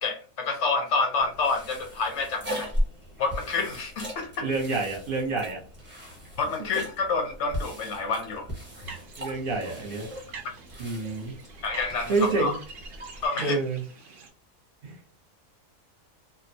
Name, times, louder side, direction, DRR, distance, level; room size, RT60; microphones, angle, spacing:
voice 1, 0.0-2.7 3.2-4.5 6.4-8.5 11.6-12.5 13.2-13.6, left 4 dB, 65° left, 4 dB, 0.8 m, -28 dB
sound 1, 1.2-13.3, equal, 10° right, 0.7 m, -37 dB
voice 2, 4.4-5.6 9.2-10.1 10.8-11.3 12.1-12.6 13.4-13.8 14.8-15.0, right 3 dB, 45° right, -1 dB, 0.9 m, -28 dB
sound 2, 8.6-14.3, right 5 dB, 60° right, 0.5 m, -46 dB
2.6 x 2.2 x 2.7 m, 0.37 s
omnidirectional pair, 1.5 m